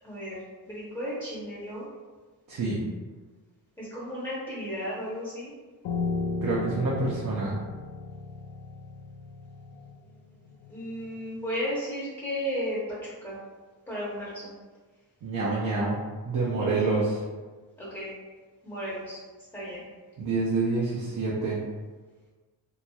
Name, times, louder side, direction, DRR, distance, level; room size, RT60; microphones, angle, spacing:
voice 1, 0.0-1.8 3.8-5.5 10.7-13.4 13.9-14.5 16.7-16.9 17.8-18.1 18.6-19.2 19.5-19.8, equal, 10° left, -8 dB, 0.8 m, -34 dB
voice 2, 2.5-2.8 6.4-7.6 15.2-16.0 16.2-17.2 20.2-21.6, right 3 dB, 50° right, -5 dB, 0.6 m, -27 dB
Piano, 5.8-11.1, left 3 dB, 65° left, 0.5 m, -35 dB
3.0 x 2.6 x 2.3 m, 1.3 s
cardioid pair, 100°, 42 cm